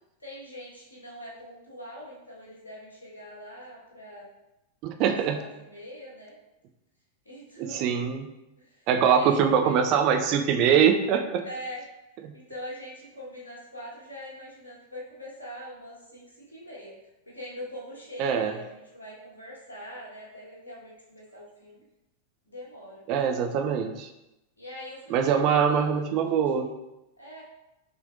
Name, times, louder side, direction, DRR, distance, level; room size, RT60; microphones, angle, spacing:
voice 1, 0.2-4.3 5.0-6.3 7.2-8.0 8.6-9.8 11.4-11.8 12.3-16.9 17.2-21.8 22.5-23.0 24.6-26.6 27.2-27.4, equal, 80° left, -6 dB, 1.4 m, -43 dB
voice 2, 4.8-5.4 7.6-8.3 8.9-11.4 12.2-12.3 18.2-18.5 23.1-24.1 25.1-26.7, right 7 dB, 40° right, 6 dB, 0.4 m, -23 dB
5.8 x 3.3 x 2.5 m, 0.93 s
figure-of-eight pair, 90°, 0 cm